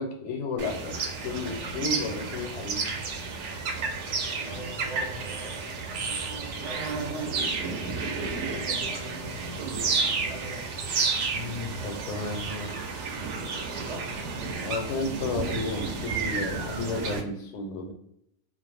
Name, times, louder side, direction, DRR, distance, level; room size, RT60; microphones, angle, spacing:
voice 1, 0.0-2.9 11.3-12.8 14.6-17.9, left 3 dB, 80° left, 3 dB, 0.9 m, -33 dB
sound 1, 0.6-17.2, right 4 dB, 75° right, 0.9 m, -31 dB
voice 2, 4.3-6.0 6.6-10.7 13.8-14.2 15.5-15.6, right 1 dB, 55° right, -4 dB, 0.4 m, -42 dB
2.4 x 2.0 x 3.1 m, 0.77 s
omnidirectional pair, 1.2 m